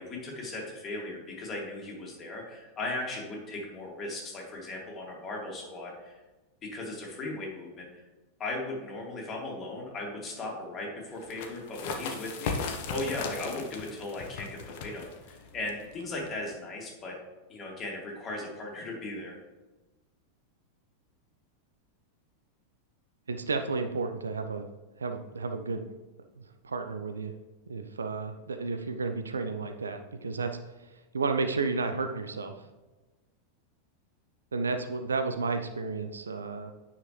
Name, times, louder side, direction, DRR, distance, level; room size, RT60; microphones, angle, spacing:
voice 1, 0.0-6.2 6.6-8.0 8.4-17.2 17.5-19.3, left 2 dB, 25° left, -2 dB, 2.4 m, -37 dB
sound 1, 11.2-16.5, left 5 dB, 50° left, 1.0 m, -38 dB
voice 2, 23.3-24.7 25.0-25.9 26.4-27.3 27.7-30.5 30.8-32.5 34.5-36.7, right 4 dB, 75° right, 7 dB, 0.6 m, -32 dB
9.3 x 5.8 x 3.2 m, 1.2 s
figure-of-eight pair, 90°, 0 cm